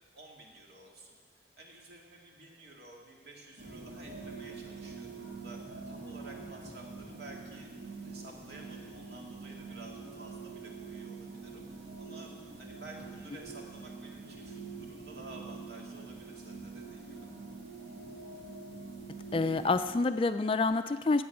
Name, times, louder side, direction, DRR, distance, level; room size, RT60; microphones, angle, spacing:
voice 1, 0.1-1.1 1.6-5.6 5.9-7.7 8.0-12.3 12.6-17.3, right 2 dB, 70° right, -1 dB, 2.2 m, -52 dB
sound 1, 3.6-19.9, right 4 dB, 85° right, 2.1 m, -45 dB
voice 2, 19.3-21.2, left 3 dB, 30° left, 11 dB, 0.3 m, -28 dB
15.0 x 8.1 x 5.9 m, 1.5 s
head